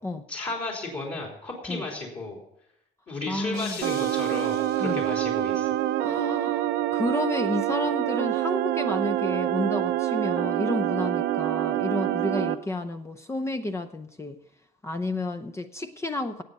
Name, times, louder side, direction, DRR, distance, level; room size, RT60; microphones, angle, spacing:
voice 1, 0.3-2.4 3.1-5.8, left 2 dB, 35° left, -1 dB, 3.4 m, -34 dB
voice 2, 3.3-3.8 4.8-5.0 6.0-14.4 14.8-16.4, left 2 dB, 15° left, 6 dB, 0.7 m, -31 dB
sound 1, 3.5-5.6, left 5 dB, 60° left, 2.1 m, -43 dB
sound 2, 3.8-12.5, right 13 dB, 85° right, 0.8 m, -26 dB
18.0 x 8.1 x 5.4 m, 0.79 s
cardioid pair, 110°, 17 cm